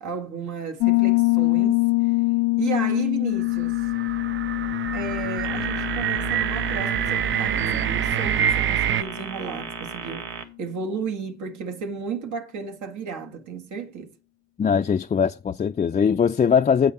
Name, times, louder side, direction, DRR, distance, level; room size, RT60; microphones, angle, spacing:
voice 1, 0.0-2.1 2.6-3.8 4.9-10.3 10.6-14.1, right 6 dB, 70° right, 1.5 m, -33 dB
Piano, 0.8-9.3, left 23 dB, 85° left, 0.5 m, -25 dB
sound 1, 3.4-9.0, right 9 dB, 40° right, 0.5 m, -26 dB
sound 2, 5.4-10.4, right 7 dB, 90° right, 1.3 m, -36 dB
voice 2, 14.6-16.9, left 7 dB, 25° left, 0.4 m, -21 dB
8.4 x 5.7 x 5.5 m
cardioid pair, 90°, 30 cm